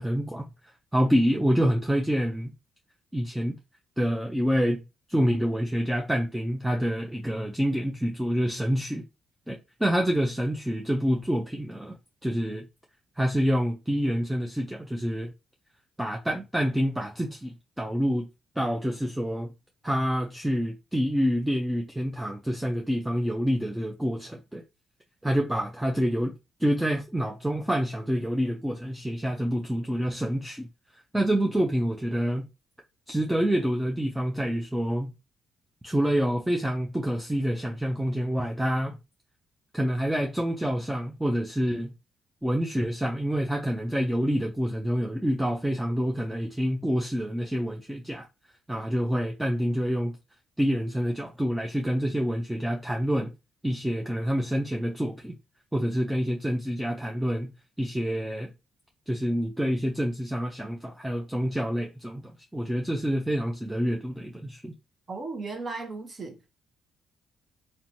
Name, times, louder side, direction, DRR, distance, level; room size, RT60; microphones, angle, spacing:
voice 1, 0.0-2.5 3.1-3.6 4.0-4.8 5.1-9.0 9.5-11.9 12.2-12.7 13.2-15.3 16.0-18.3 18.6-19.5 19.8-24.6 25.2-30.7 30.9-32.5 33.1-35.1 35.8-39.0 39.7-41.9 42.4-48.3 48.7-50.2 50.6-53.3 53.6-55.3 55.7-57.5 57.8-58.5 59.1-64.8, equal, 5° right, 0.4 m, -27 dB
voice 2, 65.1-66.6, right 3 dB, 35° right, 0.7 m, -36 dB
2.8 x 2.2 x 2.6 m
cardioid pair, 90°, 0 cm